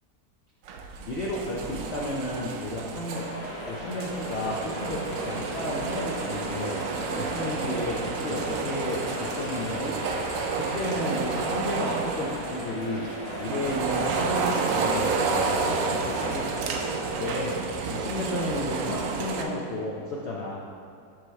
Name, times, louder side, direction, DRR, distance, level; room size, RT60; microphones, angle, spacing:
sound 1, 0.7-19.4, right 4 dB, 70° right, 0.7 m, -30 dB
voice 1, 1.0-3.3 3.7-10.0 10.4-13.1 13.4-17.6 17.8-20.6, left 1 dB, 60° left, -5 dB, 0.7 m, -33 dB
sound 2, 3.1-16.9, left 1 dB, 80° left, 2.1 m, -37 dB
6.1 x 3.2 x 5.6 m, 2.4 s
omnidirectional pair, 1.9 m